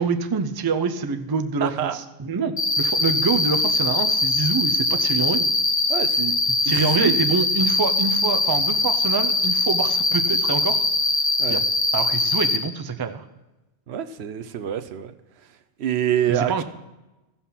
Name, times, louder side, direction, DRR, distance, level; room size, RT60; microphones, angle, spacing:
voice 1, 0.0-5.5 6.7-10.8 11.5-11.6 11.9-13.2 16.3-16.6, right 5 dB, 30° right, 7 dB, 0.5 m, -26 dB
voice 2, 1.6-2.0 5.9-6.3 6.6-7.2 11.4-11.6 13.9-15.1 15.8-16.6, right 10 dB, 75° right, 10 dB, 0.9 m, -26 dB
Cricket, 2.6-12.6, left 2 dB, 30° left, 1.4 m, -22 dB
15.0 x 5.8 x 5.7 m, 1.0 s
omnidirectional pair, 1.1 m